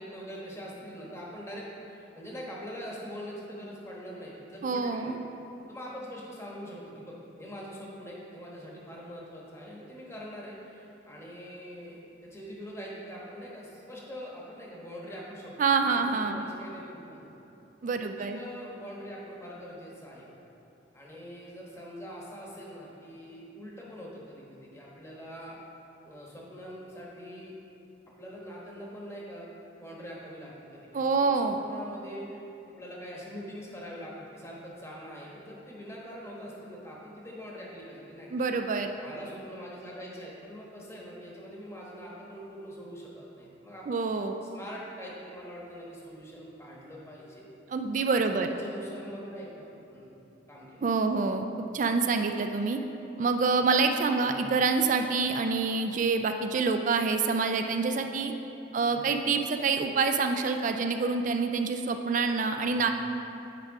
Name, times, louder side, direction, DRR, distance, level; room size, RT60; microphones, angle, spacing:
voice 1, 0.0-5.1 5.7-17.3 18.0-20.3 20.9-25.6 26.0-27.5 28.2-29.5 29.8-32.4 32.8-38.5 39.0-44.0 44.4-47.5 48.1-50.1 50.5-50.9 54.2-54.5 58.8-59.1 62.5-62.8, equal, 15° left, -4 dB, 1.1 m, -43 dB
voice 2, 4.6-5.2 15.6-16.4 17.8-18.4 30.9-31.6 38.3-38.9 43.9-44.4 47.7-48.5 50.8-52.8 53.2-58.3 58.7-62.9, right 4 dB, 45° right, 6 dB, 0.3 m, -27 dB
8.9 x 4.6 x 4.7 m, 2.9 s
head